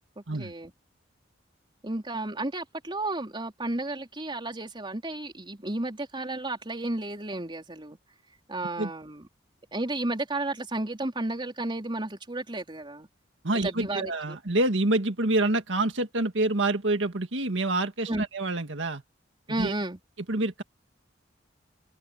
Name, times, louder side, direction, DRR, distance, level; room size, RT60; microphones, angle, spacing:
voice 1, 0.2-0.7 1.8-8.0 8.5-9.3 9.7-13.1 13.5-14.4 18.1-18.3 19.5-20.0, right 2 dB, 25° right, 3.9 m, -33 dB
voice 2, 13.4-19.0 19.6-19.7 20.3-20.6, right 2 dB, 85° right, 1.9 m, -27 dB
open air
head